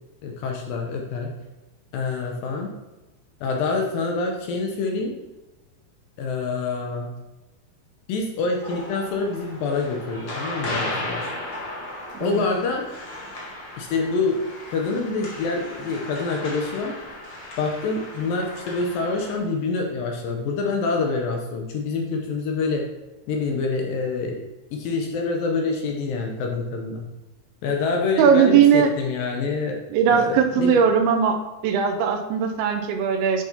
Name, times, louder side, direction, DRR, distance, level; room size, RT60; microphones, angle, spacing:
voice 1, 0.2-1.3 1.9-2.7 3.4-5.1 6.2-7.1 8.1-11.3 12.2-12.9 13.8-14.4 14.7-17.0 17.6-22.9 23.3-24.4 24.7-27.0 27.6-29.8 30.1-30.8, left 4 dB, 75° left, 1 dB, 2.3 m, -26 dB
sound 1, 8.6-19.4, left 1 dB, 50° left, 1.4 m, -35 dB
voice 2, 28.2-28.9 29.9-31.4 31.6-33.4, right 7 dB, 80° right, 4 dB, 2.5 m, -19 dB
10.0 x 5.8 x 2.8 m, 1.1 s
omnidirectional pair, 4.6 m